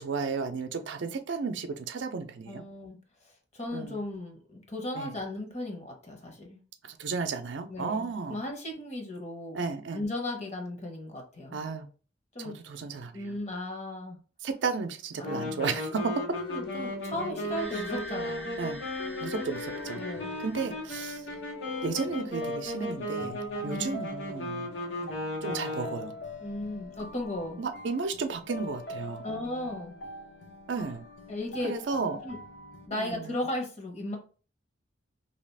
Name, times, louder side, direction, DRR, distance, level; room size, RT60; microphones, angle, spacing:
voice 1, 0.0-2.6 3.7-4.0 4.9-5.2 6.8-8.4 9.5-10.0 11.5-11.9 12.4-13.2 14.4-16.1 18.6-18.8 19.2-20.0 20.4-21.2 21.8-24.7 25.4-26.1 27.6-29.3 30.7-31.1 31.6-32.2 32.9-33.3, right 4 dB, 80° right, 0.4 m, -33 dB
voice 2, 2.5-3.0 3.5-6.6 7.7-9.6 9.9-11.6 12.3-12.5 13.1-14.2 15.2-15.7 16.5-18.6 20.0-20.4 23.6-24.0 26.4-27.6 29.2-29.9 31.3-31.7 32.2-32.4 32.9-34.2, left 1 dB, 40° left, 0.8 m, -36 dB
sound 1, 15.2-26.2, left 1 dB, 85° left, 0.9 m, -36 dB
sound 2, 15.9-32.9, left 3 dB, 70° left, 0.6 m, -43 dB
sound 3, 17.5-21.4, equal, 5° left, 0.5 m, -45 dB
2.8 x 2.4 x 3.2 m
head